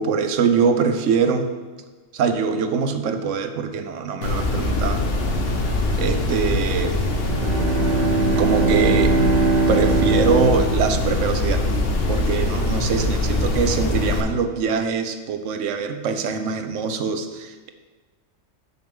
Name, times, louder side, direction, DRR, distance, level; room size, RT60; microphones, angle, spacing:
voice 1, 0.0-1.5 2.1-5.0 6.0-7.0 8.4-9.2 9.7-11.7 12.1-17.7, right 6 dB, 80° right, 8 dB, 1.0 m, -23 dB
sound 1, 4.2-14.2, left 2 dB, 55° left, 1.0 m, -23 dB
Bowed string instrument, 7.2-11.5, right 3 dB, 55° right, 0.5 m, -22 dB
6.7 x 6.6 x 3.5 m, 1.4 s
omnidirectional pair, 1.3 m